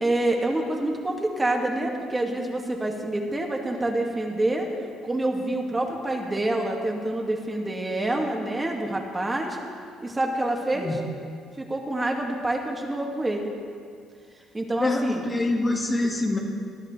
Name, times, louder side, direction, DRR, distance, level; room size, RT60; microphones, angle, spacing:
voice 1, 0.0-4.7 5.0-9.6 10.0-11.0 11.6-13.5 14.5-15.2, right 1 dB, 20° right, 1 dB, 2.0 m, -27 dB
voice 2, 14.8-16.4, left 2 dB, 30° left, 1 dB, 1.8 m, -25 dB
20.0 x 10.5 x 3.3 m, 2.2 s
hypercardioid pair, 60°, 0 cm